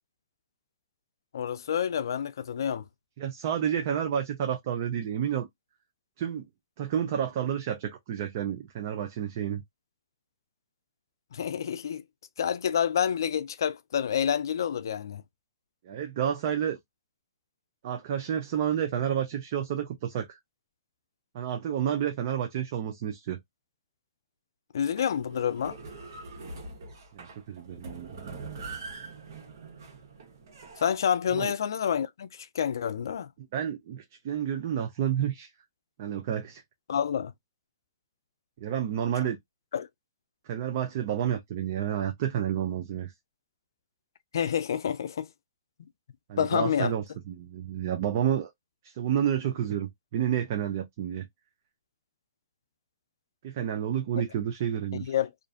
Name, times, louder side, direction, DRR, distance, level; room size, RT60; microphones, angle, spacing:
voice 1, 1.3-2.9 11.3-12.0 12.4-15.2 24.7-25.8 30.8-33.3 36.9-37.3 39.7-39.9 44.3-45.3 46.4-46.9 55.1-55.3, left 8 dB, 75° left, 0.4 m, -28 dB
voice 2, 3.2-5.5 6.2-6.5 6.8-9.6 15.8-16.8 17.8-20.4 21.3-23.4 27.1-28.3 31.3-31.5 33.4-35.5 36.0-36.6 38.6-39.4 40.5-43.1 46.3-48.5 48.8-51.3 53.4-55.1, right 9 dB, 45° right, 0.5 m, -30 dB
sound 1, 24.8-31.1, right 3 dB, 60° right, 0.9 m, -43 dB
2.5 x 2.4 x 2.3 m
hypercardioid pair, 150°, 2 cm